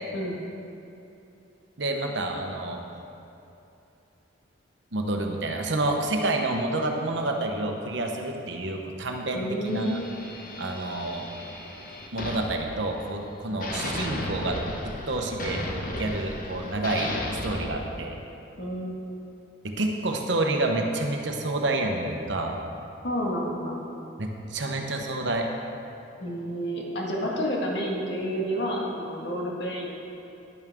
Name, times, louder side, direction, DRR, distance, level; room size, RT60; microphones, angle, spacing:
voice 1, 1.8-2.8 4.9-10.0 10.6-11.3 12.1-14.6 14.8-15.6 16.0-17.2 17.4-18.2 19.6-22.6 24.2-25.5, right 2 dB, 65° right, 3 dB, 1.0 m, -28 dB
voice 2, 9.3-10.1 18.6-18.9 23.0-23.8 26.2-29.9, equal, 60° left, -3 dB, 1.8 m, -30 dB
sound 1, 9.6-13.3 13.6-17.7, left 1 dB, 45° left, 1.1 m, -35 dB
10.5 x 10.5 x 3.7 m, 2.8 s
head